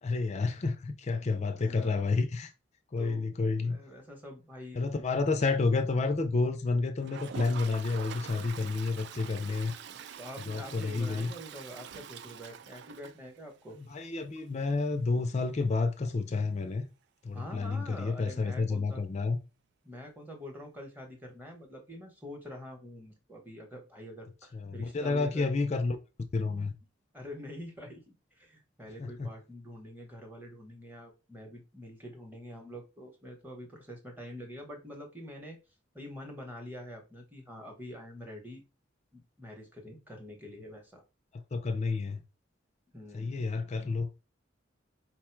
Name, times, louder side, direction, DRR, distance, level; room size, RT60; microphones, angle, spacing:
voice 1, 0.0-2.5 2.9-3.8 4.7-9.7 10.5-11.3 13.9-16.9 17.2-19.4 24.5-26.0 26.3-26.7 29.0-29.3 41.5-42.2 43.1-44.1, left 3 dB, 35° left, 0.4 m, -30 dB
voice 2, 1.6-1.9 3.0-4.9 9.8-13.8 17.3-19.0 19.8-25.5 27.1-28.0 28.4-35.6 35.9-38.6 39.1-41.0 42.9-43.4, left 1 dB, 10° right, 0.9 m, -46 dB
Toilet flush, 7.0-13.7 14.1-14.2 14.4-14.5 14.7-14.8 17.4-17.5 18.8-18.9, right 8 dB, 60° right, 0.3 m, -45 dB
4.3 x 2.2 x 4.4 m
head